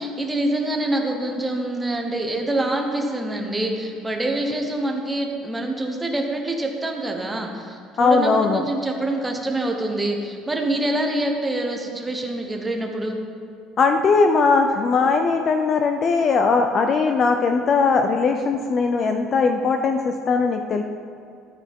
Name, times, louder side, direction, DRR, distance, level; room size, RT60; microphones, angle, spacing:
voice 1, 0.0-13.2, right 1 dB, 10° right, 2 dB, 0.9 m, -25 dB
voice 2, 8.0-8.6 13.8-20.8, left 4 dB, 30° left, 6 dB, 0.4 m, -19 dB
13.0 x 9.1 x 3.6 m, 2.4 s
cardioid pair, 175°, 0 cm